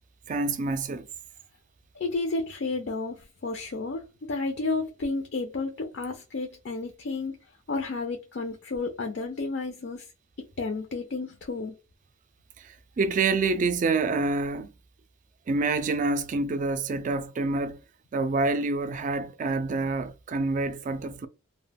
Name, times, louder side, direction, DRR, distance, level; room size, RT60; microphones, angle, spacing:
voice 1, 0.3-1.1 12.6-14.7 15.5-17.8 18.1-21.3, right 3 dB, 40° right, 0.3 m, -27 dB
voice 2, 2.0-7.4 7.7-10.1 10.6-11.7, left 3 dB, 60° left, 0.4 m, -31 dB
2.1 x 2.1 x 3.3 m
head